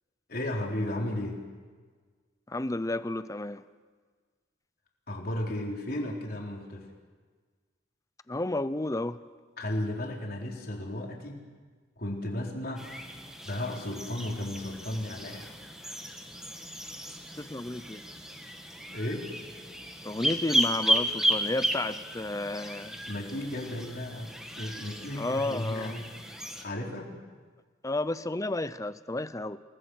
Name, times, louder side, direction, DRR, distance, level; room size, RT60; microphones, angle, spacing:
voice 1, 0.3-1.4 5.1-6.9 9.6-11.5 12.0-12.9 13.4-15.5 18.9-19.3 23.1-26.2 26.6-27.2, left 1 dB, 55° left, 0 dB, 4.0 m, -34 dB
voice 2, 2.5-3.6 8.3-9.2 17.4-18.0 20.0-23.0 25.2-25.9 27.8-29.6, left 2 dB, 20° left, 14 dB, 0.8 m, -32 dB
sound 1, 12.8-26.6, equal, 5° right, 1.9 m, -34 dB
28.5 x 19.5 x 6.4 m, 1.5 s
head